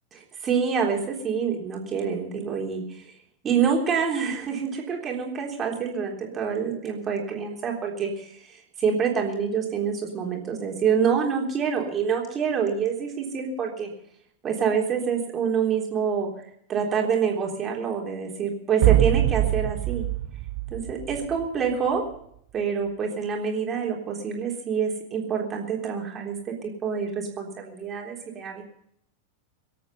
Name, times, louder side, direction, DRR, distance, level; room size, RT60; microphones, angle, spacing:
voice 1, 0.1-3.1 3.4-13.9 14.4-16.3 16.7-20.1 20.7-22.0 22.5-28.6, right 6 dB, 25° right, 0 dB, 3.6 m, -27 dB
sound 1, 18.8-21.7, right 15 dB, 45° right, 0.9 m, -23 dB
23.5 x 8.6 x 5.6 m, 0.70 s
figure-of-eight pair, 90°, 0 cm